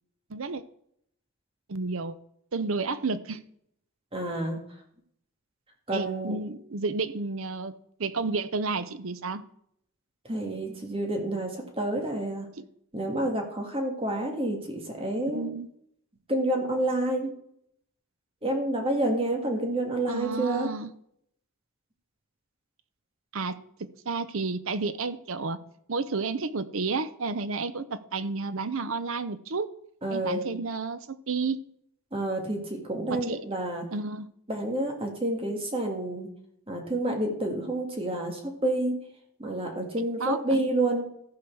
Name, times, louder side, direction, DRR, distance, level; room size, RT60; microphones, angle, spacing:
voice 1, 0.3-0.6 1.7-2.1 2.5-3.4 5.9-7.7 8.0-9.4 12.6-12.7 15.3-15.7 20.1-20.9 23.3-25.6 25.9-29.7 30.1-31.6 33.1-33.4 33.9-34.3 40.2-40.6, right 4 dB, 65° right, 13 dB, 0.7 m, -31 dB
voice 2, 4.1-4.6 5.9-6.4 10.2-12.5 12.9-15.5 16.3-17.3 18.4-20.7 30.0-30.4 32.1-33.9 34.5-36.3 36.7-39.0 39.4-41.1, right 1 dB, 25° right, 2 dB, 2.0 m, -29 dB
14.5 x 4.8 x 6.2 m, 0.70 s
head